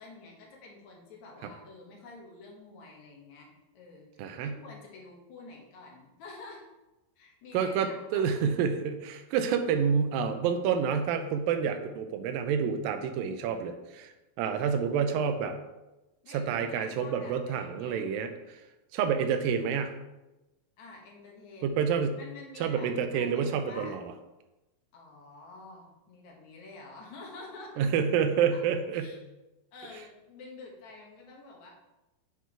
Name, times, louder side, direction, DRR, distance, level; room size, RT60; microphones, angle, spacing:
voice 1, 0.0-6.7 7.2-8.5 16.2-18.1 20.8-21.8 22.2-24.0 24.9-27.9 28.9-29.2 29.7-31.7, left 3 dB, 60° left, -1 dB, 2.5 m, -48 dB
voice 2, 4.2-4.6 7.5-15.6 16.3-18.6 18.9-20.0 21.6-22.2 22.6-24.0 27.8-29.1, right 7 dB, 90° right, 7 dB, 2.4 m, -28 dB
8.1 x 4.6 x 4.5 m, 1.0 s
omnidirectional pair, 4.1 m